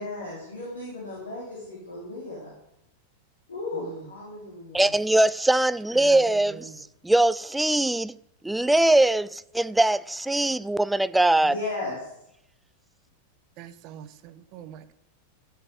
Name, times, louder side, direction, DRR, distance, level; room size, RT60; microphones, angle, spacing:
voice 1, 0.0-2.5 3.5-4.9 11.4-12.1, left 2 dB, 70° left, 4.0 m, -35 dB
voice 2, 3.7-4.1 5.9-6.8 13.6-14.9, right 10 dB, 40° right, 1.1 m, -44 dB
voice 3, 4.7-6.7 7.0-8.2 8.4-11.5, right 1 dB, 5° right, 0.4 m, -21 dB
13.0 x 8.3 x 7.9 m
figure-of-eight pair, 90°, 0 cm